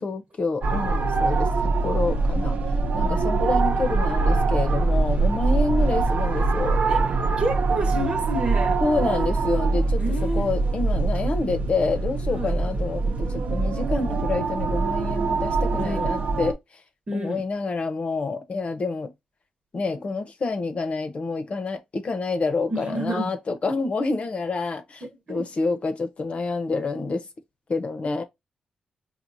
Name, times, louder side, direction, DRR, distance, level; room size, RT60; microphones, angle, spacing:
voice 1, 0.0-2.6 2.9-6.8 8.8-10.0 10.3-16.6 17.1-19.1 19.7-25.0 25.3-27.2 27.7-28.2, left 3 dB, 50° left, 0.9 m, -28 dB
sound 1, 0.6-16.5, right 3 dB, 65° right, 0.9 m, -23 dB
voice 2, 3.0-3.3 6.9-8.8 10.0-10.5 12.3-12.6 15.8-16.2 17.1-17.5 22.7-23.3 25.3-25.5, right 1 dB, 45° right, 1.2 m, -30 dB
4.6 x 2.4 x 2.6 m
cardioid pair, 65°, 3 cm